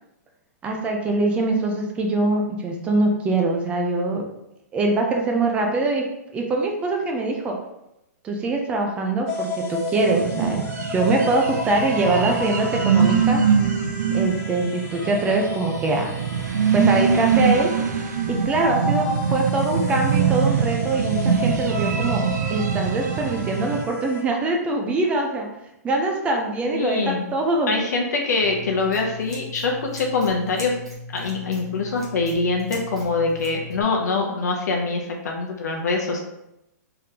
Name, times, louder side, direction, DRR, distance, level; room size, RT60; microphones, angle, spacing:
voice 1, 0.6-4.3 4.7-6.0 6.3-7.6 8.2-10.6 10.9-13.4 14.1-16.1 16.7-17.7 18.3-22.2 22.5-25.5 25.8-27.7, right 2 dB, 15° right, 1 dB, 0.4 m, -23 dB
sound 1, 9.3-24.2, left 2 dB, 30° left, 1.1 m, -33 dB
sound 2, 10.0-23.8, right 6 dB, 75° right, 0.5 m, -23 dB
voice 2, 26.7-27.3 27.7-30.8 31.1-36.2, left 3 dB, 75° left, 0 dB, 0.7 m, -24 dB
Scissors, 28.4-33.8, left 2 dB, 5° left, 0.9 m, -38 dB
3.6 x 3.4 x 2.8 m, 0.87 s
hypercardioid pair, 155°, 9 cm